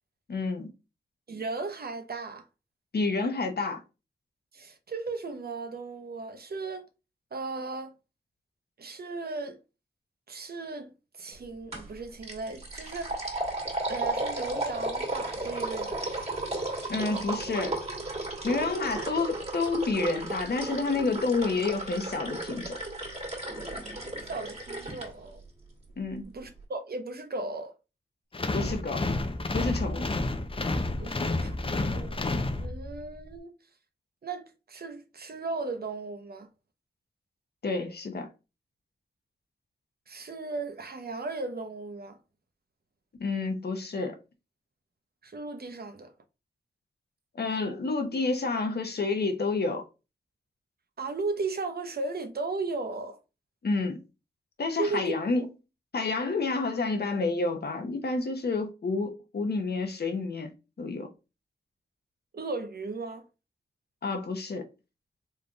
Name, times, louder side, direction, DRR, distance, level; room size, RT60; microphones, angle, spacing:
voice 1, 0.3-0.7 2.9-3.8 16.9-17.8 18.4-22.8 26.0-26.3 28.5-29.0 29.5-30.1 37.6-38.3 43.2-44.2 47.3-49.8 53.6-54.0 54.6-55.5 55.9-60.5 60.8-61.1 64.0-64.6, left 3 dB, 65° left, 1.1 m, -29 dB
voice 2, 1.3-2.5 4.5-6.9 7.3-7.9 8.8-9.6 10.3-13.3 13.9-16.3 24.1-25.4 26.3-27.7 31.0-32.2 32.6-33.6 34.2-36.5 40.1-42.2 45.2-46.1 51.0-53.2 54.8-55.5 62.3-63.2, right 3 dB, 60° right, 0.9 m, -36 dB
sound 1, 11.7-11.9 12.2-25.1, right 2 dB, 35° right, 2.1 m, -34 dB
sound 2, 28.3-33.1, left 2 dB, 30° left, 0.7 m, -30 dB
4.3 x 3.4 x 2.4 m
cardioid pair, 55°, 18 cm